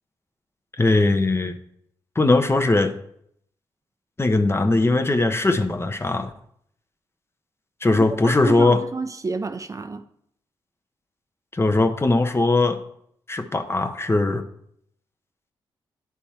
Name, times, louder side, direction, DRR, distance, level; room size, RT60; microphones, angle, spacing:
voice 1, 0.8-1.6 2.2-2.9 4.2-6.3 7.8-8.8 11.5-12.8 13.3-14.4, left 2 dB, 25° left, 0.8 m, -20 dB
voice 2, 8.0-10.0, right 3 dB, 35° right, 0.5 m, -30 dB
9.8 x 3.5 x 4.3 m
supercardioid pair, 55°, 10 cm